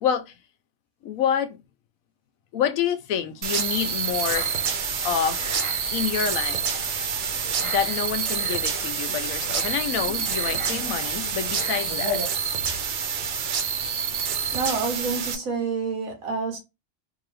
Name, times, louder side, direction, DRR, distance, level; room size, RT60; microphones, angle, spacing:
voice 1, 0.0-0.3 1.0-1.6 2.5-4.6 5.0-5.6 5.9-6.6 7.6-12.2, left 8 dB, 90° left, 1.0 m, -27 dB
sound 1, 3.4-15.3, right 6 dB, 50° right, 0.6 m, -27 dB
sound 2, 4.1-12.3, equal, 25° right, 1.4 m, -36 dB
voice 2, 14.5-16.6, right 4 dB, 85° right, 1.6 m, -28 dB
3.8 x 2.6 x 3.2 m
omnidirectional pair, 1.4 m